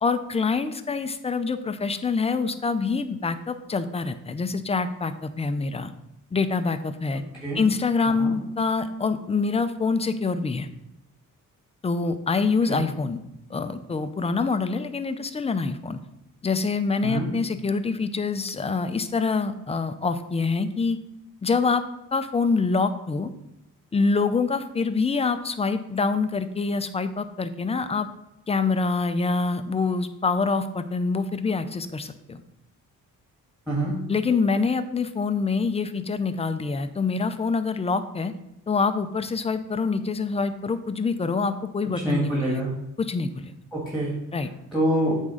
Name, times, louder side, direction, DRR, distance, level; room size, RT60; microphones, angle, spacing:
voice 1, 0.0-5.9 6.3-7.2 7.5-10.7 11.8-13.2 13.5-16.0 16.4-21.0 21.4-21.8 22.1-23.3 23.9-28.1 28.5-32.4 34.1-38.3 38.7-42.6 43.0-43.5 44.3-44.5, left 4 dB, 20° left, 10 dB, 0.5 m, -25 dB
voice 2, 7.2-7.6 8.2-8.3 12.7-12.8 17.0-17.3 33.7-33.9 41.8-42.7 43.7-44.2 44.7-45.2, right 1 dB, 5° right, -4 dB, 2.0 m, -26 dB
8.3 x 3.6 x 5.0 m, 0.85 s
cardioid pair, 110°, 34 cm